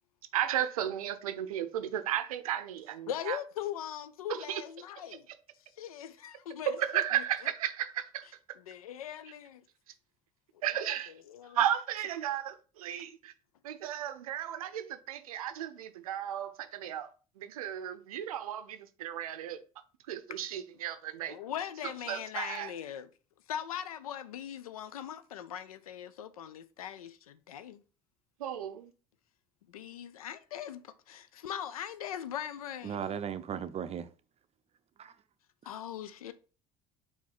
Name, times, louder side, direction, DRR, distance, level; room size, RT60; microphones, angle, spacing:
voice 1, 0.3-3.4 4.5-4.6 6.7-8.3 10.6-11.1 11.5-13.3 13.6-17.1 17.4-19.6 20.1-21.4 22.1-22.7 28.4-28.9, right 11 dB, 80° right, 0.5 m, -34 dB
voice 2, 3.1-5.3 5.8-7.2 8.6-9.6 10.7-11.0 11.3-11.6 20.3-20.4 21.3-23.1 23.5-27.8 29.7-33.1 35.6-36.3, left 10 dB, 85° left, 0.4 m, -40 dB
voice 3, 32.8-34.1 35.0-35.1, right 8 dB, 35° right, 0.5 m, -36 dB
4.6 x 2.7 x 4.0 m
hypercardioid pair, 65°, 18 cm